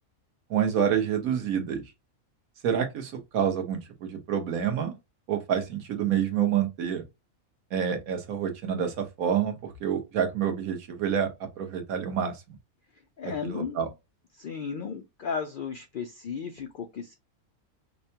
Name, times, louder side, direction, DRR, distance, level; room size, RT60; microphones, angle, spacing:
voice 1, 0.5-1.8 2.6-5.0 5.3-7.0 7.7-11.3 11.6-12.4 13.4-13.9, right 8 dB, 80° right, 1.3 m, -28 dB
voice 2, 13.2-13.8 14.3-17.1, left 6 dB, 90° left, 0.4 m, -34 dB
5.3 x 2.2 x 2.7 m
omnidirectional pair, 1.5 m